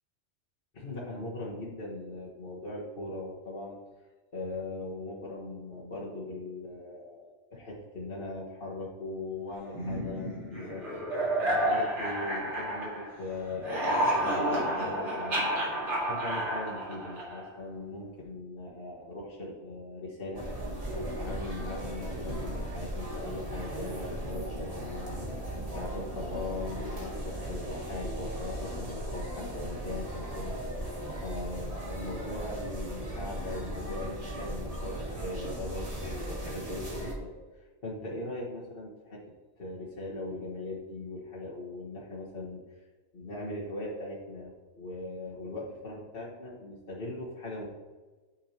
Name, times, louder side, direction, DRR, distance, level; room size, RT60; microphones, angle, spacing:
voice 1, 0.7-3.8 4.3-10.8 11.4-15.5 16.0-20.5 20.9-25.3 25.7-30.6 31.2-35.0 35.2-39.2 39.6-42.9 43.1-47.7, left 2 dB, 55° left, -7 dB, 1.6 m, -40 dB
sound 1, 9.7-13.2 13.5-17.6, right 1 dB, 85° right, 2.5 m, -30 dB
sound 2, 20.3-37.1, right 1 dB, 30° right, 1.5 m, -37 dB
9.7 x 5.7 x 2.9 m, 1.3 s
omnidirectional pair, 1.2 m